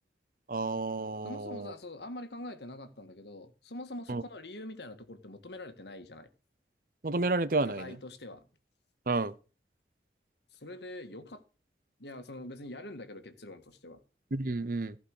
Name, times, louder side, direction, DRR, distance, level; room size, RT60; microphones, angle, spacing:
voice 1, 0.5-1.7 4.1-4.2 7.0-7.9 9.1-9.3 14.3-15.0, right 3 dB, 50° right, 0.7 m, -31 dB
voice 2, 1.2-6.3 7.7-8.5 10.5-11.4 12.0-14.0, left 1 dB, 75° left, 1.6 m, -44 dB
15.0 x 5.4 x 6.5 m
head